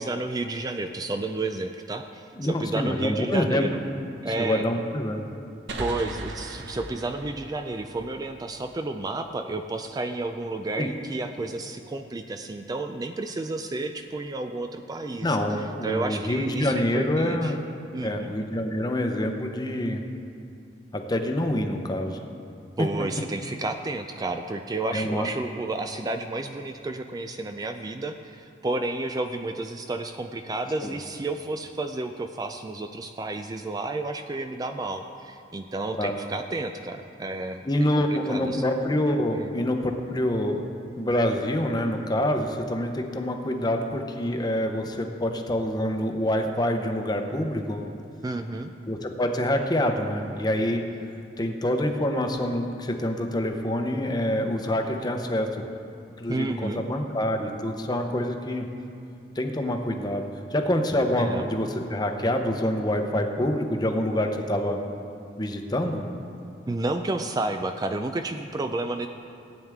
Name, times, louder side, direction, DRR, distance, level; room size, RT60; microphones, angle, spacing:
voice 1, 0.0-3.8 4.2-4.6 5.8-15.4 15.8-17.5 17.9-18.3 22.8-37.6 38.1-38.6 39.4-39.7 48.2-48.7 56.3-56.8 61.2-61.5 66.7-69.1, right 2 dB, 20° right, 6 dB, 0.3 m, -31 dB
voice 2, 2.3-3.7 4.4-5.2 10.8-10.9 15.2-17.6 18.0-20.0 20.9-22.2 24.9-25.3 30.8-30.9 36.0-36.2 37.6-40.6 41.0-47.9 48.9-50.8 51.4-55.5 56.2-58.7 59.4-60.2 60.5-64.8 65.4-66.1, left 1 dB, 25° left, 4 dB, 0.8 m, -26 dB
sound 1, 5.7-9.2, right 2 dB, 90° right, 0.9 m, -38 dB
16.5 x 8.9 x 3.6 m, 2.5 s
head